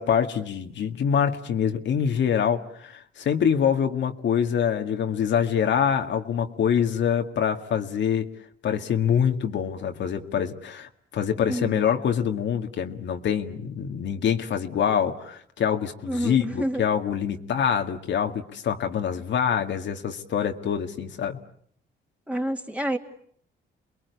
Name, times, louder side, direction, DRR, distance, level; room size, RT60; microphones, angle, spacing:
voice 1, 0.0-8.3 8.6-21.4, left 8 dB, 65° left, 5 dB, 2.0 m, -25 dB
voice 2, 11.5-11.8 16.0-16.8 22.3-23.0, right 1 dB, 5° right, 3 dB, 2.8 m, -28 dB
29.0 x 21.5 x 8.2 m, 0.65 s
cardioid pair, 90°, 20 cm